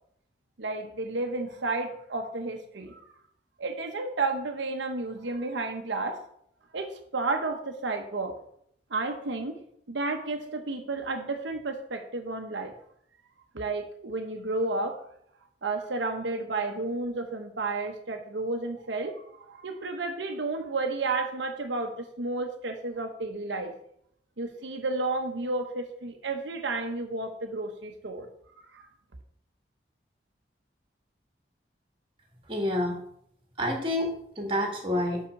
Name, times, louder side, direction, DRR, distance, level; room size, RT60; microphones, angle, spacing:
voice 1, 0.6-3.0 3.6-6.2 6.7-8.4 8.9-9.6 9.9-12.7 13.5-15.0 15.6-23.7 24.4-28.3 28.7-28.8, right 3 dB, 80° right, 4 dB, 0.9 m, -32 dB
voice 2, 32.5-33.0 33.6-35.2, left 1 dB, 30° right, 1 dB, 2.0 m, -28 dB
5.8 x 5.7 x 6.5 m, 0.68 s
head